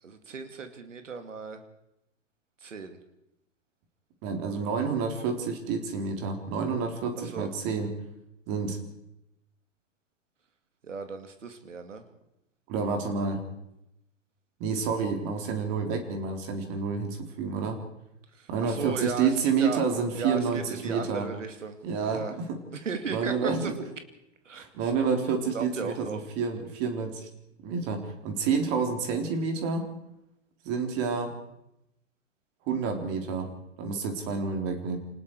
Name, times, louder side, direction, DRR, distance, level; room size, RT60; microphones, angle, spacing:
voice 1, 0.0-1.6 2.6-3.0 7.1-7.5 10.8-12.1 18.3-19.8 20.1-22.4 22.7-23.7 24.4-24.9 25.5-26.2, right 5 dB, 75° right, 7 dB, 2.5 m, -36 dB
voice 2, 4.2-7.9 8.5-8.8 12.7-13.4 14.6-17.8 18.5-21.3 21.8-22.6 23.1-23.8 24.5-27.3 27.6-29.9 30.6-31.3 32.7-33.5 33.8-35.0, right 5 dB, 35° right, 4 dB, 3.9 m, -29 dB
28.0 x 19.5 x 4.8 m, 0.85 s
figure-of-eight pair, 105°, 38 cm